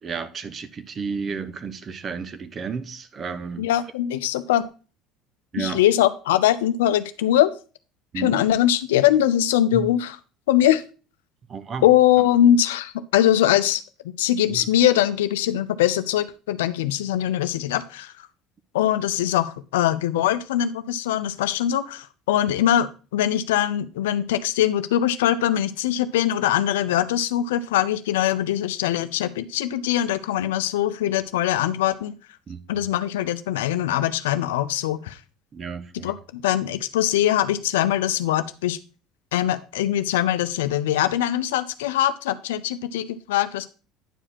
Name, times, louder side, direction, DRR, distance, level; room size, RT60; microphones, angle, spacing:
voice 1, 0.0-3.7 5.5-5.8 8.1-8.3 9.7-9.9 11.5-11.9 14.5-14.7 32.5-32.6 35.5-36.1, right 5 dB, 40° right, 1.0 m, -32 dB
voice 2, 3.6-4.7 5.5-7.5 8.1-10.2 10.5-10.8 11.8-18.3 18.7-32.1 32.7-35.2 36.0-38.8 39.3-43.7, left 12 dB, 85° left, 0.6 m, -22 dB
9.9 x 5.0 x 4.3 m
hypercardioid pair, 75°, 0 cm